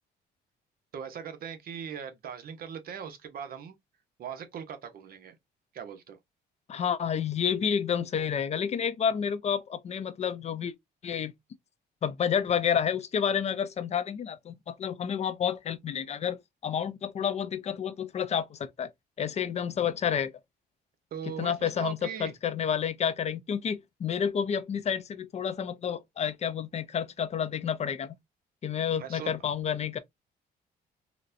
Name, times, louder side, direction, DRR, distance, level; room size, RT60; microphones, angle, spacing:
voice 1, 0.9-3.8 4.2-5.4 5.7-6.2 21.1-22.3 29.0-29.3, right 8 dB, 60° right, 0.9 m, -40 dB
voice 2, 6.7-10.7 11.0-11.3 12.0-18.9 19.2-20.3 21.4-28.2 28.6-30.0, left 8 dB, 40° left, 0.5 m, -30 dB
3.9 x 2.2 x 2.5 m
cardioid pair, 105°, 18 cm